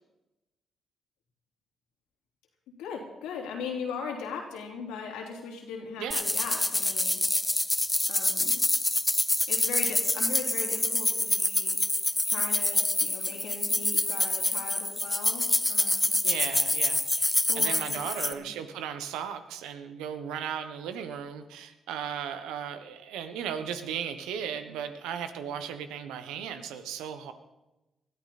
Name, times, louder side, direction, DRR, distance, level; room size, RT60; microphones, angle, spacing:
voice 1, 2.8-7.5 8.1-8.6 9.5-11.8 12.2-16.1 17.5-18.5, left 5 dB, 85° left, 0 dB, 3.1 m, -39 dB
sound 1, 6.1-18.3, left 2 dB, 15° left, 1.1 m, -26 dB
voice 2, 16.2-27.3, right 8 dB, 85° right, 9 dB, 1.2 m, -36 dB
20.0 x 13.5 x 4.2 m, 1.0 s
supercardioid pair, 55°, 0 cm